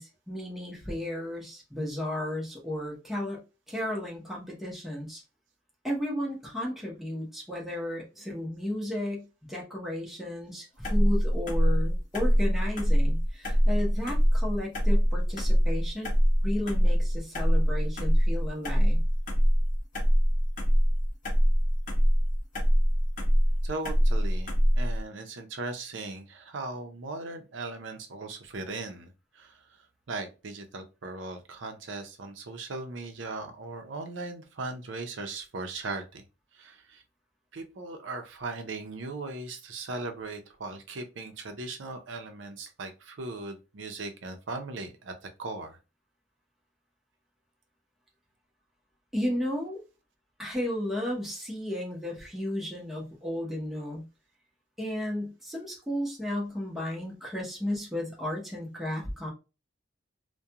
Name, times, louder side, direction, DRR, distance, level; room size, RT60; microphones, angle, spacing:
voice 1, 0.0-3.4 3.7-5.2 5.8-16.1 16.4-19.0 49.1-49.8 50.4-54.0 54.8-59.3, left 1 dB, ahead, -3 dB, 0.8 m, -34 dB
sound 1, 10.8-25.0, equal, 45° left, 0.8 m, -23 dB
voice 2, 23.6-29.6 30.1-36.2 36.5-37.0 37.5-45.8, right 3 dB, 70° right, 6 dB, 0.6 m, -38 dB
2.4 x 2.2 x 2.8 m, 0.29 s
head